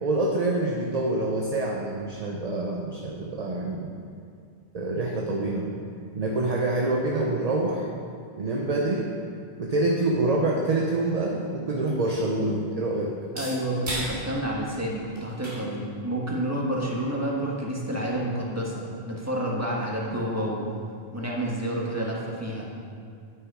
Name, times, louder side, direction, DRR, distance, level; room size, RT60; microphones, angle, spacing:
voice 1, 0.0-3.9 4.7-5.7 6.1-7.9 8.4-9.1 9.6-13.1, right 2 dB, 40° right, 0 dB, 0.8 m, -26 dB
sound 1, 11.4-18.8, right 1 dB, 80° right, 2.7 m, -41 dB
voice 2, 13.3-20.6 21.1-22.7, right 1 dB, 15° right, -3 dB, 1.5 m, -29 dB
9.6 x 7.6 x 5.0 m, 2.3 s
omnidirectional pair, 1.1 m